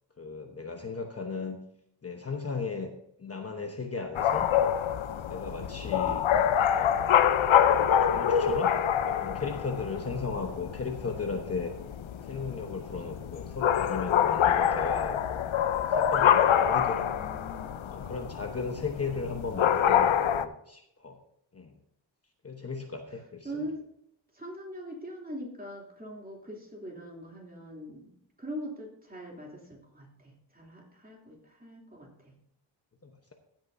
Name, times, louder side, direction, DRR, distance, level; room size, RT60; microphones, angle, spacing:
voice 1, 0.2-1.6 2.0-2.9 3.2-4.5 5.3-6.2 6.7-7.2 8.0-8.8 9.0-11.7 12.2-15.4 15.9-17.1 17.9-21.2 21.5-21.8 22.4-23.7 33.0-33.3, left 4 dB, 30° left, 3 dB, 1.0 m, -36 dB
sound 1, 4.1-20.5, left 9 dB, 80° left, 0.7 m, -26 dB
voice 2, 5.8-6.2 10.2-10.6 16.9-17.8 23.4-23.8 24.3-28.1 28.4-32.3, equal, 20° right, -1 dB, 2.9 m, -42 dB
15.5 x 8.8 x 2.7 m, 0.77 s
wide cardioid pair, 135°, 46 cm